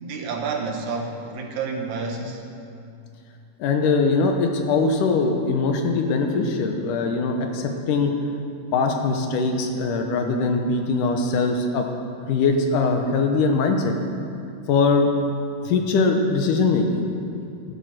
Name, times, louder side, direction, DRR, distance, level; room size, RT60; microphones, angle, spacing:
voice 1, 0.0-2.4, right 4 dB, 65° right, 2 dB, 2.2 m, -29 dB
voice 2, 3.6-8.1 8.7-11.9 12.3-13.9 14.7-15.1 15.6-17.0, left 4 dB, 75° left, 4 dB, 2.4 m, -21 dB
15.5 x 9.7 x 6.4 m, 2.5 s
omnidirectional pair, 3.9 m